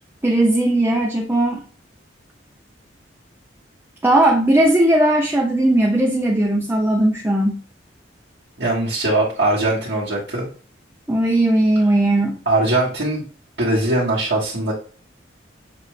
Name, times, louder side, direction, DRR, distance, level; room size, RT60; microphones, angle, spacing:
voice 1, 0.2-1.6 4.0-7.6 11.1-12.4, right 1 dB, 10° right, 1 dB, 0.4 m, -17 dB
voice 2, 8.6-10.5 12.4-13.3 13.6-14.7, right 2 dB, 60° right, -9 dB, 1.4 m, -20 dB
6.5 x 2.3 x 3.2 m, 0.40 s
head